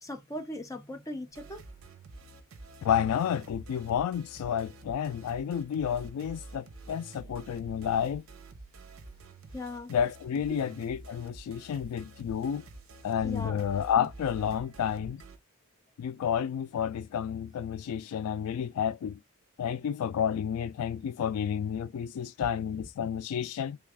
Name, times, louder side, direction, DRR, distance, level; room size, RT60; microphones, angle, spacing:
voice 1, 0.0-1.6 9.5-9.9 10.5-10.6 13.2-13.6, left 1 dB, 15° left, 0.7 m, -39 dB
sound 1, 1.3-15.4, right 2 dB, 65° right, 0.7 m, -48 dB
voice 2, 2.8-8.2 9.9-12.6 13.0-15.2 16.0-19.2 19.6-23.8, left 8 dB, 85° left, 0.3 m, -30 dB
3.2 x 2.4 x 3.3 m
head